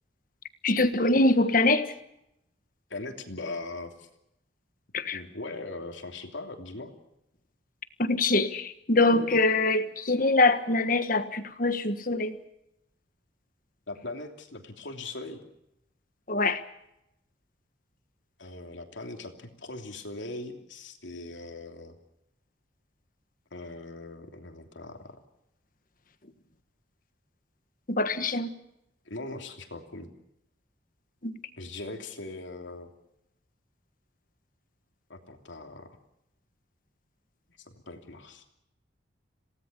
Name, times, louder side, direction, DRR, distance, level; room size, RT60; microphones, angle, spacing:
voice 1, 0.6-1.9 4.9-5.2 8.0-12.4 16.3-16.6 27.9-28.5 31.2-31.3, left 2 dB, 45° left, 10 dB, 1.4 m, -24 dB
voice 2, 2.9-4.1 5.1-6.9 13.9-15.4 18.4-22.0 23.5-25.1 29.1-30.1 31.6-32.9 35.1-36.0 37.6-38.4, left 2 dB, 80° left, 4 dB, 3.0 m, -40 dB
27.5 x 18.0 x 6.8 m, 0.83 s
head